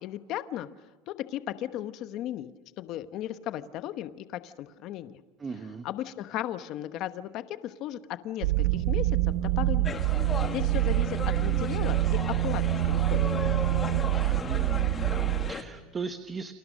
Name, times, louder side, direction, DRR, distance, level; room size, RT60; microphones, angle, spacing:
voice 1, 0.0-0.7 1.1-2.5 2.8-5.2 5.8-10.0 10.5-13.2, left 12 dB, 45° left, 11 dB, 1.1 m, -36 dB
voice 2, 5.4-5.9 14.2-16.5, right 5 dB, 15° right, 8 dB, 1.1 m, -38 dB
sound 1, 8.4-15.5, right 17 dB, 80° right, 0.8 m, -26 dB
sound 2, 9.8-15.6, left 5 dB, 20° left, 1.7 m, -36 dB
29.5 x 26.0 x 6.5 m, 1.3 s
cardioid pair, 155°, 0 cm